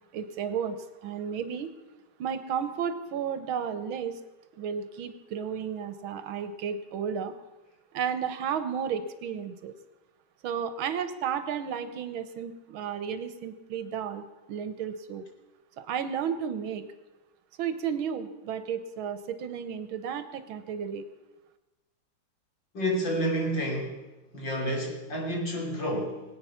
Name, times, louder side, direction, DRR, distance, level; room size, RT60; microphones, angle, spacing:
voice 1, 0.1-0.8 1.0-1.7 2.2-4.2 4.6-7.3 7.9-9.7 10.4-15.2 15.8-16.8 17.6-21.0, right 7 dB, 85° right, 11 dB, 1.8 m, -33 dB
voice 2, 22.7-24.0 24.3-26.2, equal, 65° left, 0 dB, 3.8 m, -29 dB
22.0 x 8.7 x 5.8 m, 1.1 s
omnidirectional pair, 2.2 m